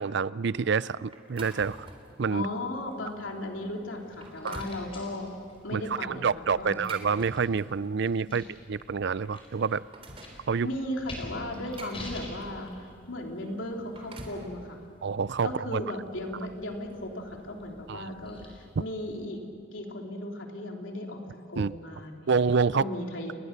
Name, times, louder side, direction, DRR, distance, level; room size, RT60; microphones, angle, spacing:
voice 1, 0.0-1.9 2.2-2.5 4.4-4.6 5.7-9.8 10.5-10.7 15.0-15.8 17.9-18.0 21.6-21.7 22.3-22.9, right 5 dB, 60° right, 18 dB, 0.5 m, -27 dB
sound 1, 1.1-2.2 2.7-2.9 3.5-3.6 4.0-4.8 6.5-7.9 8.9-9.0 9.3-10.4 11.3-12.7 13.7-14.5, right 2 dB, 30° right, 3.4 m, -46 dB
voice 2, 2.3-5.3 5.6-6.8 8.3-8.4 10.6-14.8 15.4-19.4 19.7-22.3 22.7-23.4, left 1 dB, 80° left, 1 dB, 3.3 m, -36 dB
sound 2, 2.3-19.2, left 1 dB, 30° left, 5.1 m, -49 dB
30.0 x 21.0 x 6.7 m, 2.4 s
head